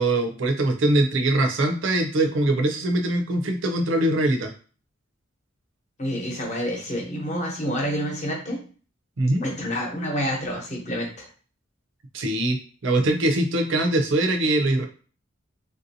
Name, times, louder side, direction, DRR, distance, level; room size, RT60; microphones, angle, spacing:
voice 1, 0.0-4.5 9.2-9.4 12.1-14.9, right 1 dB, 65° right, 4 dB, 0.5 m, -22 dB
voice 2, 6.0-8.6 9.4-11.3, equal, 35° left, -1 dB, 0.9 m, -28 dB
3.3 x 2.6 x 2.7 m, 0.40 s
head